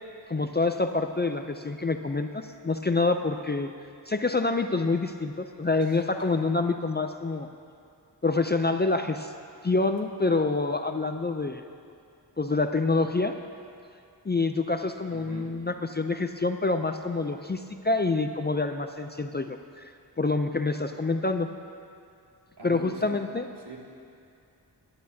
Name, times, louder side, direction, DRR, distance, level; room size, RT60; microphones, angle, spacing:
voice 1, 0.3-3.7 4.1-7.5 8.2-9.3 9.6-11.6 12.4-13.4 14.2-19.9 20.2-21.5 22.6-23.5, left 3 dB, 25° left, 6 dB, 0.4 m, -27 dB
voice 2, 5.8-6.3 15.1-15.5 22.6-23.1 23.6-23.8, right 2 dB, 70° right, -3 dB, 2.3 m, -43 dB
23.5 x 10.5 x 2.8 m, 2.5 s
wide cardioid pair, 95°, 42 cm